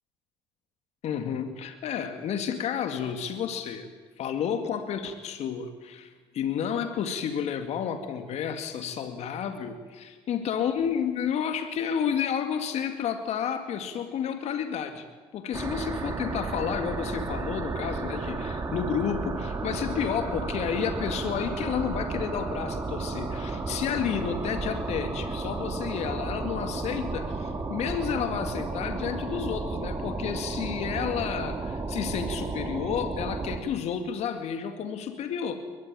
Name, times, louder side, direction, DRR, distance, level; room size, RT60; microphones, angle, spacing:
voice 1, 1.0-3.9 4.2-15.1 15.3-35.6, left 8 dB, 55° left, 7 dB, 2.3 m, -31 dB
sound 1, 15.5-33.6, right 3 dB, 25° right, 4.3 m, -33 dB
22.5 x 21.0 x 9.1 m, 1.4 s
hypercardioid pair, 65°, 13 cm